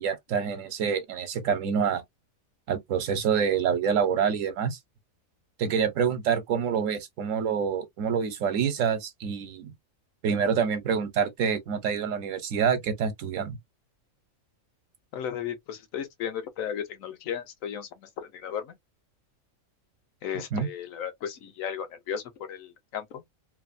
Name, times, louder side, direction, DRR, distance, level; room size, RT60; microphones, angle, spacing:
voice 1, 0.0-2.0 2.7-4.8 5.6-9.7 10.2-13.6 20.5-20.7, right 7 dB, 70° right, 1.0 m, -27 dB
voice 2, 15.1-18.7 20.2-22.2 22.5-23.2, left 8 dB, 75° left, 1.1 m, -35 dB
3.1 x 2.0 x 2.4 m
omnidirectional pair, 1.4 m